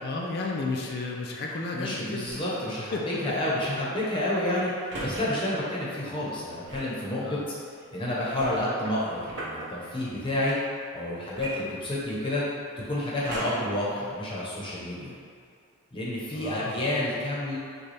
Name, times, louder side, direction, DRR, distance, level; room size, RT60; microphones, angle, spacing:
voice 1, 0.0-2.3 2.9-3.2 7.2-7.4 11.6-11.8 16.3-16.9, left 3 dB, 45° left, -1 dB, 0.4 m, -33 dB
voice 2, 1.7-2.9 3.2-4.7 5.0-7.6 7.9-10.6 10.9-12.4 12.9-15.1 15.9-17.6, left 1 dB, 20° left, -7 dB, 0.9 m, -29 dB
sound 1, 2.2-2.6 4.9-5.2 6.6-7.0 8.4-9.7 11.3-12.3 13.2-13.8 14.4-14.5, right 1 dB, 50° right, 0.8 m, -38 dB
6.5 x 2.3 x 3.3 m, 2.4 s
head